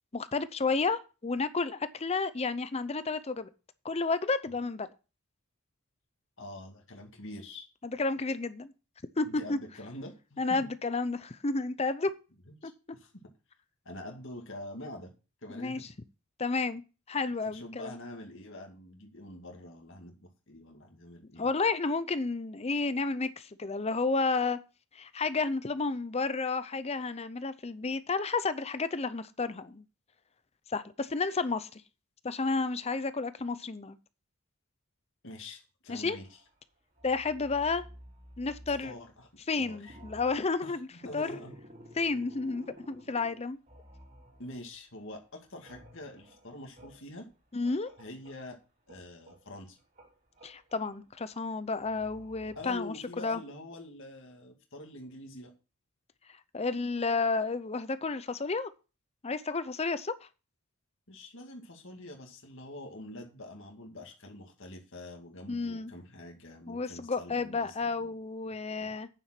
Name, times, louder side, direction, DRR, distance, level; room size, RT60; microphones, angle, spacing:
voice 1, 0.1-3.5 3.8-4.9 7.8-8.7 9.2-9.6 10.4-12.1 15.5-15.8 16.4-16.8 17.1-18.0 21.4-24.6 24.9-29.8 30.7-31.8 32.2-34.0 35.9-36.2 37.0-37.8 38.4-38.9 39.5-40.9 41.1-41.4 42.0-43.6 47.5-47.9 50.4-53.4 56.5-58.7 59.2-60.3 65.5-65.9 66.7-69.1, left 4 dB, 30° left, 0.6 m, -31 dB
voice 2, 6.4-7.7 9.2-10.7 12.5-13.2 13.8-15.1 15.4-15.9 17.5-21.5 35.2-36.4 38.8-39.3 39.6-40.0 40.6-41.5 44.4-47.3 48.0-48.6 48.9-49.8 52.6-55.5 61.1-68.1 68.8-68.9, left 1 dB, 60° left, 2.2 m, -45 dB
sound 1, 36.1-36.6 36.9-39.5 39.7-44.9 45.2-48.5 48.9-53.3, equal, 40° right, 3.5 m, -54 dB
9.2 x 7.1 x 5.8 m
head